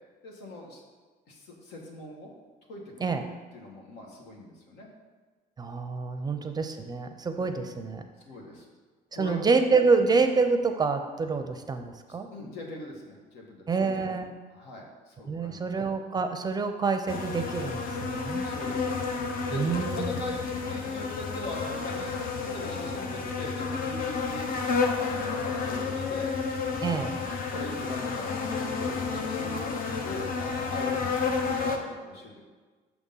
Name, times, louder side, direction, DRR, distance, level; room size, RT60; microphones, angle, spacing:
voice 1, 0.2-0.8 1.3-2.3 2.7-3.1 3.5-4.9 6.2-6.5 7.3-7.5 8.2-8.7 9.1-9.4 12.1-14.2 14.5-15.8 18.4-18.9 19.5-19.6 19.9-22.1 22.4-26.3 26.9-27.2 27.5-32.5, left 1 dB, 90° left, -1 dB, 1.4 m, -42 dB
voice 2, 5.6-8.0 9.1-12.3 13.7-14.3 15.3-18.4 19.5-20.2 26.8-27.1, right 4 dB, 25° right, 7 dB, 0.5 m, -27 dB
sound 1, 17.1-31.8, left 4 dB, 60° left, 0.8 m, -31 dB
6.0 x 3.7 x 5.5 m, 1.4 s
cardioid pair, 110°, 17 cm